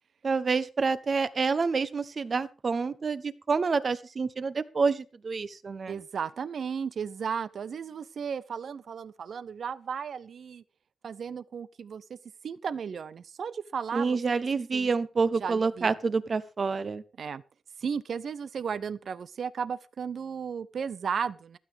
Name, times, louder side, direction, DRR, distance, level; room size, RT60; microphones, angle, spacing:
voice 1, 0.2-6.0 13.9-17.0, right 4 dB, 55° right, 1.1 m, -28 dB
voice 2, 5.9-10.6 11.0-12.2 12.4-14.4 14.7-14.9 15.4-15.9 17.2-17.4 17.8-21.6, right 6 dB, 70° right, 0.6 m, -35 dB
15.5 x 12.5 x 3.5 m
cardioid pair, 65°, 0 cm